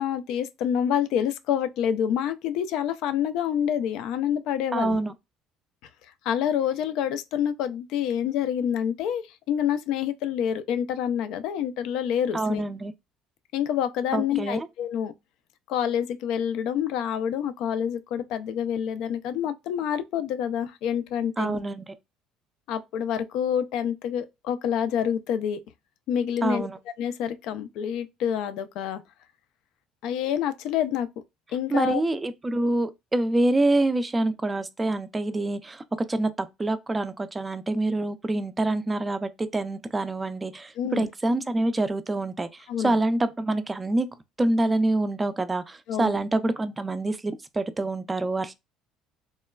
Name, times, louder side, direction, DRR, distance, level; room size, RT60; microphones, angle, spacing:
voice 1, 0.0-5.0 6.2-12.6 13.5-15.1 15.7-21.6 22.7-25.6 26.1-26.7 27.0-29.0 30.0-31.1 31.5-32.0 40.8-41.1 42.7-43.0 45.9-46.2, left 9 dB, 75° left, 0.3 m, -27 dB
voice 2, 4.7-5.1 12.3-12.9 14.1-14.7 21.4-21.9 26.4-26.8 31.7-35.8 36.1-44.1 44.4-48.5, right 2 dB, 20° right, 0.3 m, -26 dB
3.1 x 2.1 x 2.2 m
supercardioid pair, 100°, 0 cm